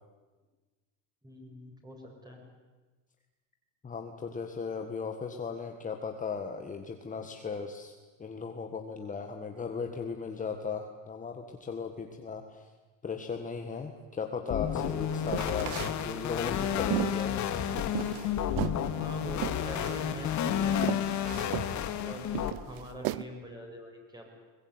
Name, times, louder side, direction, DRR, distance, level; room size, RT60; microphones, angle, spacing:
voice 1, 1.2-2.0 2.2-2.4 19.0-21.0 22.0-24.3, equal, 10° right, 1 dB, 7.2 m, -44 dB
voice 2, 3.8-7.9 8.2-12.7 13.0-17.4 21.7-21.8, left 5 dB, 20° left, 4 dB, 1.7 m, -37 dB
sound 1, 14.5-22.5, left 9 dB, 50° left, 2.3 m, -31 dB
sound 2, 15.2-16.0 16.4-18.3 18.6-18.8 19.4-20.0 20.4-20.5 20.8-21.7 22.3-23.2, right 18 dB, 65° right, 0.9 m, -34 dB
22.0 x 21.0 x 9.7 m, 1.3 s
supercardioid pair, 125°, 37 cm